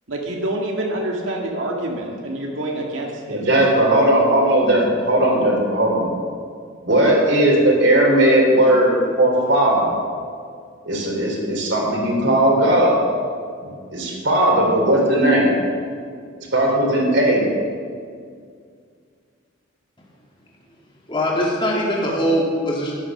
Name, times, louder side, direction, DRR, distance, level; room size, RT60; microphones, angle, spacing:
voice 1, 0.1-3.5, right 1 dB, 75° right, 0 dB, 1.8 m, -27 dB
voice 2, 3.3-6.1 6.8-9.9 10.9-13.0 13.6-15.5 16.5-17.4, right 1 dB, 60° right, -1 dB, 3.8 m, -17 dB
voice 3, 21.1-22.9, equal, 25° left, -4 dB, 2.3 m, -21 dB
12.5 x 11.5 x 6.5 m, 2.1 s
head